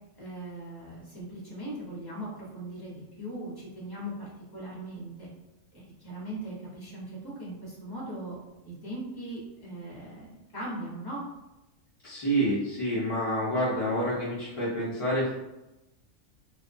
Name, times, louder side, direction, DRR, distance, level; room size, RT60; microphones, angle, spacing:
voice 1, 0.2-5.3 5.7-8.4 8.6-11.2, right 1 dB, 20° left, -6 dB, 0.7 m, -39 dB
voice 2, 12.0-15.3, equal, 45° left, -9 dB, 0.4 m, -28 dB
2.6 x 2.2 x 2.5 m, 0.98 s
omnidirectional pair, 1.3 m